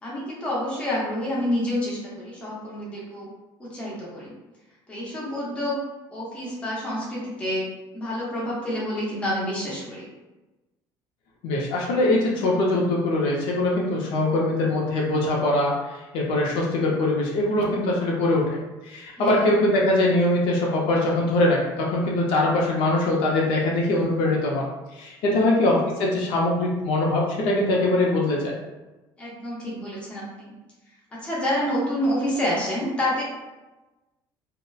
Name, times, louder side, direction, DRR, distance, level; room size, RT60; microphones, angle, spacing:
voice 1, 0.0-3.3 3.6-4.3 4.9-5.8 6.1-7.7 7.9-10.1 19.2-19.4 25.2-25.6 29.2-30.5 31.2-33.2, left 1 dB, 15° left, -6 dB, 0.6 m, -28 dB
voice 2, 11.4-18.6 18.8-24.7 24.9-28.5, left 1 dB, 65° left, -3 dB, 0.5 m, -22 dB
2.8 x 2.0 x 2.3 m, 1.1 s
cardioid pair, 175°, 9 cm